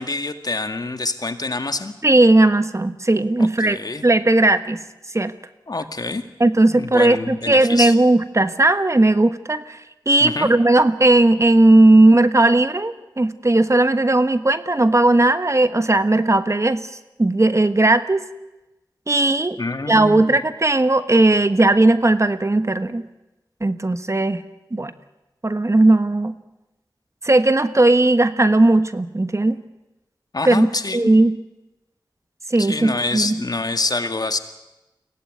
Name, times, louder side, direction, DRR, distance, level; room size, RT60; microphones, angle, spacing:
voice 1, 0.0-1.9 3.4-4.1 5.7-6.2 6.7-7.9 10.2-10.5 19.6-20.4 30.3-31.0 32.6-34.4, left 3 dB, 50° left, 8 dB, 1.9 m, -26 dB
voice 2, 2.0-4.8 5.1-5.3 6.4-9.8 10.1-16.8 17.2-18.2 19.1-19.6 19.9-23.0 23.6-24.4 24.7-24.9 25.4-26.4 27.2-29.6 30.4-31.4 32.5-33.4, right 2 dB, 35° right, 11 dB, 1.3 m, -16 dB
23.0 x 17.5 x 9.6 m, 1.0 s
cardioid pair, 45°, 8 cm